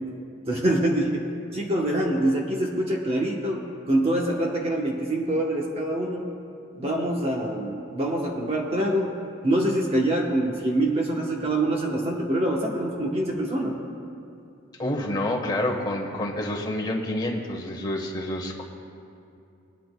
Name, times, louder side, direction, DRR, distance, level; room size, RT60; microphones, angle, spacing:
voice 1, 0.5-1.2 1.5-3.6 3.9-6.3 6.8-9.1 9.4-13.8, right 1 dB, 30° right, -1 dB, 1.0 m, -25 dB
voice 2, 14.8-18.7, left 1 dB, 20° left, -1 dB, 1.2 m, -28 dB
20.5 x 10.0 x 2.3 m, 2.7 s
head